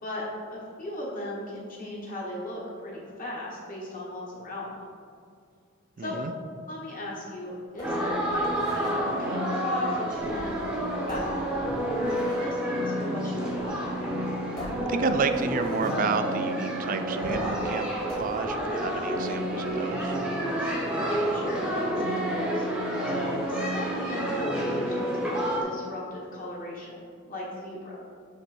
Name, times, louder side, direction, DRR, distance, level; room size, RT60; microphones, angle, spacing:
voice 1, 0.0-4.8 6.0-6.2 6.7-14.0 20.6-22.6 23.0-26.9 27.2-28.0, left 1 dB, 45° left, -4 dB, 1.5 m, -37 dB
voice 2, 6.0-6.3 14.8-20.2, right 4 dB, 40° right, 9 dB, 0.4 m, -30 dB
sound 1, 7.8-9.0 10.1-10.7 11.1-12.5 13.5-13.8 14.1-14.2 14.6-16.0 17.2-17.7 18.1-19.2 19.6-20.0, equal, 20° left, 1.3 m, -40 dB
sound 2, 7.8-25.6, equal, 5° right, 0.8 m, -29 dB
8.1 x 3.2 x 4.4 m, 2.2 s
head